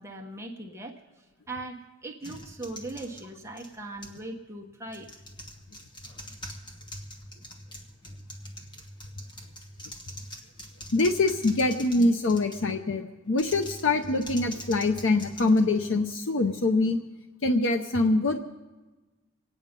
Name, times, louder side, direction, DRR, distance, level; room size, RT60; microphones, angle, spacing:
voice 1, 0.0-5.1 9.8-10.0 10.3-10.5, right 2 dB, 15° right, 0 dB, 1.2 m, -40 dB
sound 1, 2.2-4.3 4.9-12.8 13.3-16.2, equal, 25° left, 1.5 m, -44 dB
voice 2, 10.9-17.0 17.4-18.4, left 2 dB, 65° left, 6 dB, 0.7 m, -24 dB
25.5 x 9.4 x 5.2 m, 1.2 s
head